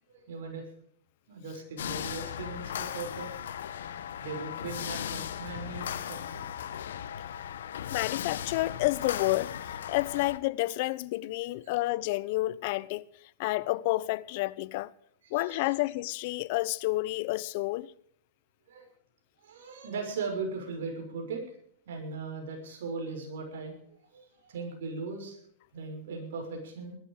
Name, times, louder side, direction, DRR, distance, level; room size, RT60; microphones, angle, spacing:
voice 1, 0.1-0.6 1.3-3.3 4.2-6.4 11.6-11.7 15.3-15.7 18.7-18.9 19.4-21.4 21.9-25.4 25.7-27.0, right 4 dB, 75° right, 6.2 m, -38 dB
sound 1, 1.8-10.4, left 9 dB, 80° left, 1.3 m, -37 dB
voice 2, 7.9-9.5 9.9-13.0 13.4-14.9 15.3-17.9, left 19 dB, 55° left, 0.9 m, -30 dB
20.5 x 11.5 x 5.0 m
hypercardioid pair, 130°, 0 cm